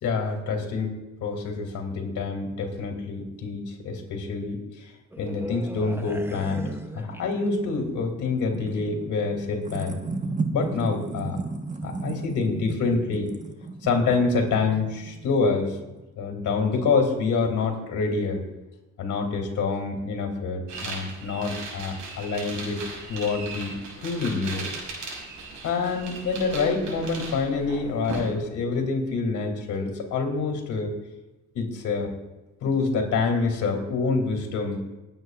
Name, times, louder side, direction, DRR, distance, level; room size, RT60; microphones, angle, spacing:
voice 1, 0.0-0.9 1.2-4.9 5.2-10.0 10.5-11.4 11.8-13.3 13.8-15.8 16.2-18.4 19.0-22.8 23.1-23.7 24.0-24.7 25.6-30.9 31.5-32.1 32.6-34.8, left 4 dB, 75° left, 2 dB, 3.0 m, -26 dB
sound 1, 5.1-7.8 8.1-8.3, right 2 dB, 10° right, 0.8 m, -38 dB
sound 2, 6.5-16.0, right 3 dB, 25° right, 1.3 m, -35 dB
sound 3, 20.7-28.2, right 3 dB, 75° right, 4.8 m, -38 dB
27.0 x 9.1 x 2.5 m, 1.1 s
cardioid pair, 90°, 30 cm